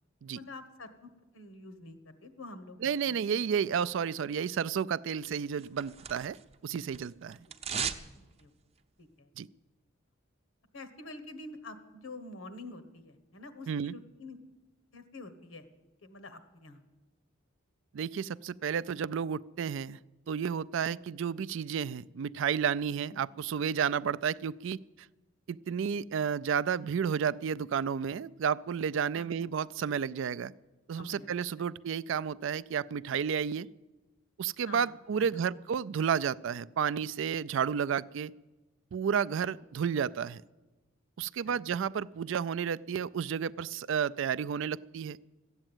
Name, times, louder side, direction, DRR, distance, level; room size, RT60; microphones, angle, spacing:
voice 1, 0.3-2.8 3.0-3.3 8.4-8.5 9.0-9.3 10.7-14.4 14.9-15.7 16.0-16.8 20.9-21.0 23.1-23.2 29.1-29.4 31.0-31.3 31.6-31.7 34.6-35.6 39.4-39.6 41.4-41.6, left 2 dB, 90° left, 11 dB, 1.4 m, -47 dB
voice 2, 2.8-6.4 6.6-7.4 9.4-9.5 13.7-13.9 17.9-20.0 20.3-24.8 25.5-30.5 30.9-33.7 34.4-38.3 38.9-40.4 41.2-45.2, right 7 dB, 65° right, 19 dB, 0.4 m, -31 dB
sound 1, 5.3-6.5 6.8-8.1 8.4-8.5, right 7 dB, 30° right, 0.7 m, -37 dB
13.5 x 8.8 x 9.0 m, 1.1 s
head